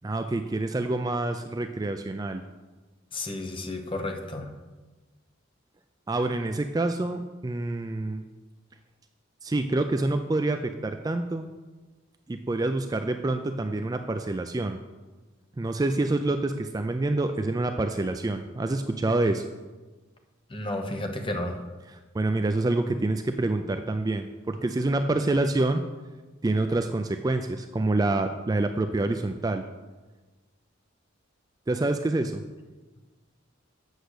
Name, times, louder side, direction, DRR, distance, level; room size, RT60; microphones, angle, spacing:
voice 1, 0.0-2.4 6.1-8.2 9.4-11.5 12.3-14.8 15.6-19.4 22.1-25.8 26.4-29.6 31.7-32.4, right 2 dB, 20° right, 7 dB, 0.3 m, -27 dB
voice 2, 3.1-4.5 20.5-21.6, left 1 dB, 25° left, 5 dB, 0.9 m, -32 dB
8.0 x 6.5 x 6.5 m, 1.3 s
head